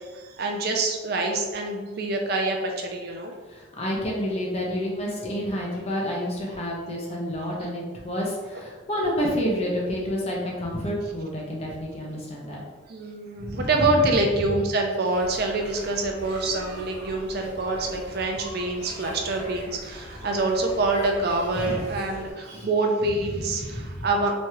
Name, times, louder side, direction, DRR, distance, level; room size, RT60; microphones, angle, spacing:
voice 1, 0.0-3.3 12.9-24.3, right 2 dB, 50° right, 2 dB, 0.5 m, -26 dB
voice 2, 3.5-12.6 13.4-14.1 21.6-21.8 22.5-22.7 23.3-24.0, equal, 30° left, -3 dB, 0.8 m, -29 dB
sound 1, 15.1-22.3, left 1 dB, 65° left, 1.4 m, -41 dB
3.5 x 3.1 x 2.9 m, 1.3 s
head